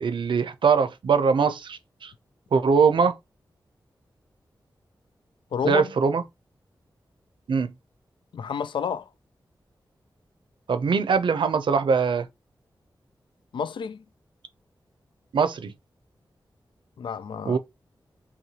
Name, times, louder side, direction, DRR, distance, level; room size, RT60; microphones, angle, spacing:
voice 1, 0.0-2.1 2.5-3.2 5.6-6.2 7.5-7.7 10.7-12.3 15.3-15.7 17.5-17.6, right 5 dB, 90° right, 0.6 m, -22 dB
voice 2, 5.5-5.9 8.3-9.1 13.5-14.0 17.0-17.6, left 7 dB, 85° left, 0.4 m, -30 dB
5.7 x 2.3 x 2.9 m
wide cardioid pair, 130°, 8 cm